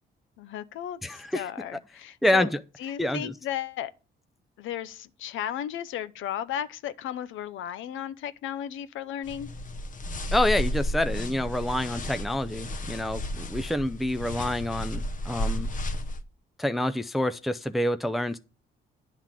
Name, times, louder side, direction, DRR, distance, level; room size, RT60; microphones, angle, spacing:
voice 1, 0.4-2.5 2.8-3.9 4.6-9.5, left 10 dB, 80° left, 0.7 m, -35 dB
voice 2, 1.0-1.5 2.2-2.5 3.0-3.3 10.3-15.7 16.6-18.4, left 1 dB, ahead, 0.5 m, -27 dB
sound 1, 9.2-16.2, left 1 dB, 40° left, 1.0 m, -32 dB
10.0 x 3.7 x 7.4 m
cardioid pair, 90°, 20 cm